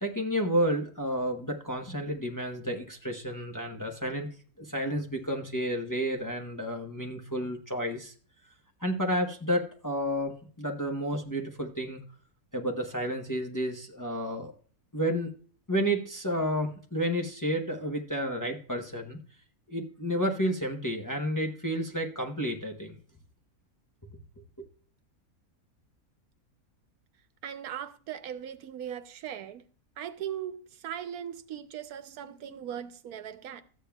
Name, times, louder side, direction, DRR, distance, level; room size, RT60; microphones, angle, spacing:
voice 1, 0.0-4.3 4.6-8.1 8.8-12.0 12.5-14.5 14.9-15.3 15.7-19.2 19.7-23.0 24.6-24.7, equal, 15° left, 0.7 m, -31 dB
voice 2, 27.4-29.6 30.0-33.6, right 9 dB, 85° right, 1.2 m, -39 dB
13.5 x 8.7 x 2.3 m
omnidirectional pair, 1.5 m